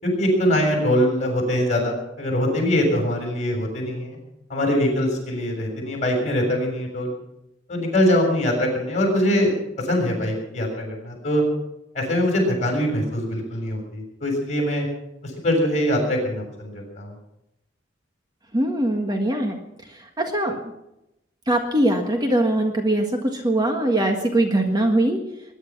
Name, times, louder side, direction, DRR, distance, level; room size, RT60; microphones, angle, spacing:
voice 1, 0.0-4.2 4.5-7.1 7.7-11.4 12.0-14.9 15.4-17.1, equal, 35° left, 1 dB, 6.9 m, -23 dB
voice 2, 18.5-19.6 19.9-20.7 21.5-25.2, right 1 dB, 20° right, 3 dB, 1.6 m, -22 dB
21.5 x 11.0 x 6.0 m, 0.87 s
head